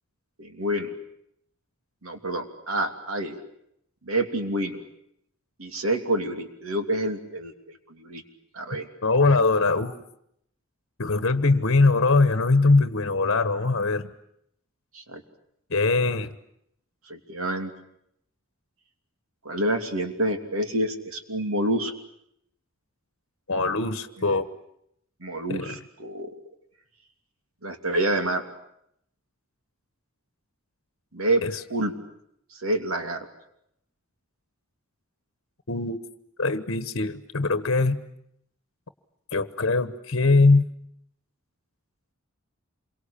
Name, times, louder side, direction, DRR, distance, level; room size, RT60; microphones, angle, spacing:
voice 1, 0.4-0.9 2.0-3.4 4.0-4.8 5.6-8.2 8.5-8.9 14.9-15.2 17.1-17.7 19.4-21.9 25.2-26.3 27.6-28.4 31.1-31.4 31.7-31.9 32.6-33.3, right 1 dB, 75° right, 6 dB, 3.0 m, -28 dB
voice 2, 9.0-9.9 11.0-14.1 15.7-16.3 23.5-24.5 25.5-25.8 31.4-31.6 35.7-36.0 36.4-38.0 39.3-40.7, left 3 dB, 60° left, 11 dB, 1.2 m, -22 dB
27.5 x 24.0 x 8.6 m, 0.74 s
head